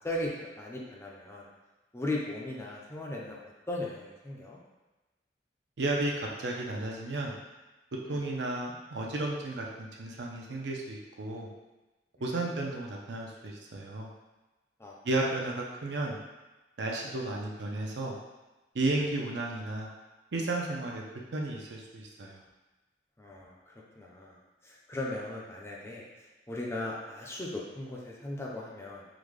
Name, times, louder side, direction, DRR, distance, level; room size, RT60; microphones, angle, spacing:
voice 1, 0.0-1.5 1.9-4.6 8.1-8.2 12.2-12.6 14.8-15.3 19.0-19.1 23.2-24.4 24.6-26.0 26.5-29.0, left 1 dB, 15° left, -3 dB, 0.4 m, -38 dB
voice 2, 5.8-7.3 8.1-11.5 12.2-14.1 15.0-16.2 16.8-18.1 18.7-19.9 20.3-21.0 21.3-22.4, right 2 dB, 75° right, -1 dB, 0.5 m, -33 dB
3.7 x 2.2 x 3.1 m, 1.1 s
head